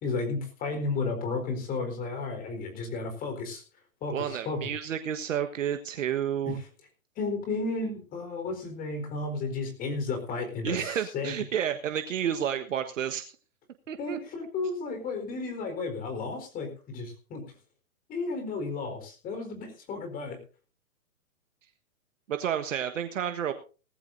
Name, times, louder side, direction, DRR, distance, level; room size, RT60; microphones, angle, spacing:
voice 1, 0.0-3.6 4.0-4.6 6.4-6.7 7.2-11.3 14.0-17.4 18.1-20.4, left 3 dB, 20° left, 6 dB, 4.3 m, -33 dB
voice 2, 4.1-6.6 10.6-13.3 13.9-14.2 22.3-23.5, right 9 dB, 60° right, 8 dB, 1.5 m, -30 dB
18.5 x 14.5 x 2.7 m, 0.36 s
hypercardioid pair, 145°, 42 cm